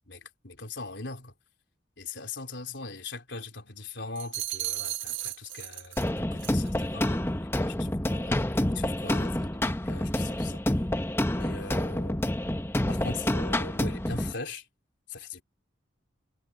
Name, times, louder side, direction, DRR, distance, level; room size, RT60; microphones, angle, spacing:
voice 1, 0.1-1.3 2.0-10.6 11.3-12.3 12.9-14.7 15.1-15.4, left 3 dB, 70° left, 3.7 m, -40 dB
sound 1, 4.2-6.1 6.4-6.7, right 13 dB, 70° right, 1.6 m, -35 dB
sound 2, 6.0-14.3, left 1 dB, 10° left, 0.8 m, -28 dB
head